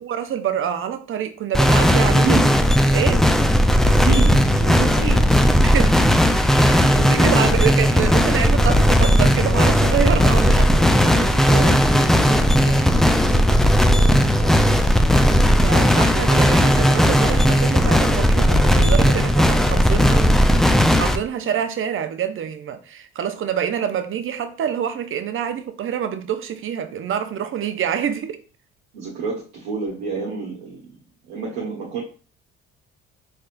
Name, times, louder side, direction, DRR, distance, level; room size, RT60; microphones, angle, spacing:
voice 1, 0.0-2.4 2.9-3.2 5.0-6.0 6.9-10.9 14.9-15.0 15.6-20.2 20.9-28.4, right 9 dB, 40° right, 0.6 m, -26 dB
sound 1, 1.5-21.2, equal, ahead, 0.3 m, -16 dB
voice 2, 2.2-2.5 3.9-5.2 6.6-7.5 10.7-14.8 28.9-30.8 31.3-32.0, right 4 dB, 70° right, 1.0 m, -30 dB
4.3 x 3.3 x 2.5 m
hypercardioid pair, 55°, 33 cm